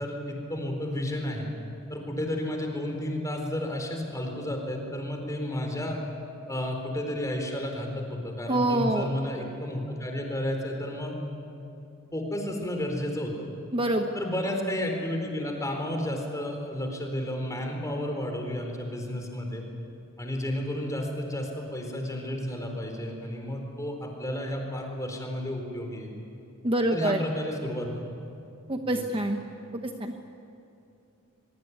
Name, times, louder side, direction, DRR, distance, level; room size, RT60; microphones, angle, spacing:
voice 1, 0.0-1.5 1.9-6.0 6.5-11.1 12.1-13.5 14.1-19.6 20.2-26.1 26.9-27.9 28.9-29.0, left 1 dB, 15° left, 2 dB, 4.3 m, -32 dB
voice 2, 8.5-9.1 13.7-14.1 26.6-27.2 28.7-29.4 30.0-30.1, right 1 dB, 25° right, 4 dB, 1.1 m, -25 dB
24.0 x 23.0 x 9.5 m, 2.7 s
head